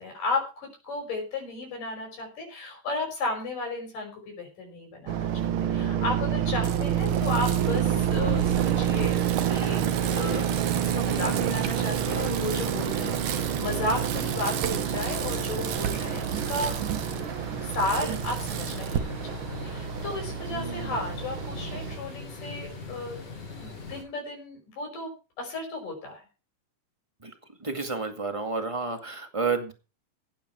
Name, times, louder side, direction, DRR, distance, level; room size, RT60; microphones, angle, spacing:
voice 1, 0.0-9.8 10.1-10.5 10.8-16.8 17.1-17.2 17.6-23.2 23.6-25.1 25.4-26.2, left 2 dB, 80° left, 1 dB, 7.2 m, -34 dB
sound 1, 5.1-22.0, right 9 dB, 85° right, 1.1 m, -28 dB
Bicycle, 6.6-19.0, right 9 dB, 65° right, 2.7 m, -35 dB
sound 2, 10.2-24.0, left 3 dB, 65° left, 7.5 m, -41 dB
voice 2, 20.5-21.1 27.2-27.3 27.6-29.7, right 4 dB, 15° right, 6 dB, 1.5 m, -31 dB
16.0 x 10.5 x 4.7 m, 0.32 s
omnidirectional pair, 3.7 m